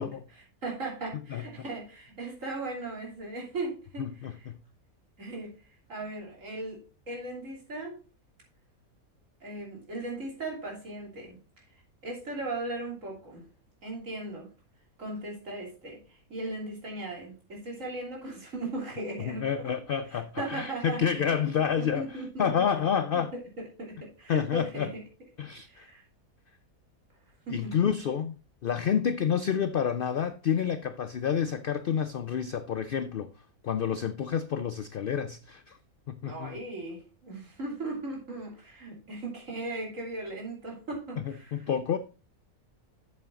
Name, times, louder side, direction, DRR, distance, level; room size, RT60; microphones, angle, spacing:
voice 1, 0.3-4.5 5.2-5.5 5.9-8.0 9.4-11.4 11.7-11.8 12.0-13.4 13.8-14.5 15.0-19.7 20.1-21.4 21.8-22.5 23.1-25.0 25.7-26.0 27.4-27.8 36.2-41.7, right 2 dB, 55° right, 3.5 m, -38 dB
voice 2, 4.0-4.6 19.2-22.1 22.4-23.3 24.3-24.9 25.4-25.9 27.5-28.4 28.6-33.3 33.6-35.8 36.1-36.6 41.5-42.0, left 8 dB, 80° left, 0.4 m, -29 dB
8.1 x 7.3 x 3.7 m
omnidirectional pair, 1.6 m